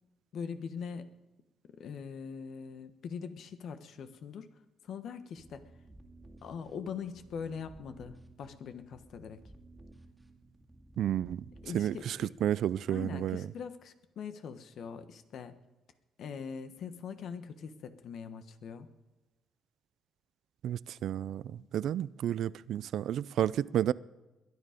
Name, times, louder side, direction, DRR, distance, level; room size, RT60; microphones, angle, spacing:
voice 1, 0.3-1.2 1.7-4.5 4.8-5.6 6.4-9.4 11.6-12.3 12.9-15.6 16.2-18.9 21.6-21.7, left 6 dB, 70° left, 10 dB, 1.2 m, -42 dB
sound 1, 5.4-12.4, right 2 dB, 10° right, 2.1 m, -56 dB
voice 2, 11.0-11.4 11.7-13.5 20.6-23.9, right 11 dB, 75° right, 20 dB, 0.4 m, -31 dB
22.0 x 9.8 x 5.1 m, 1.1 s
cardioid pair, 90°, 0 cm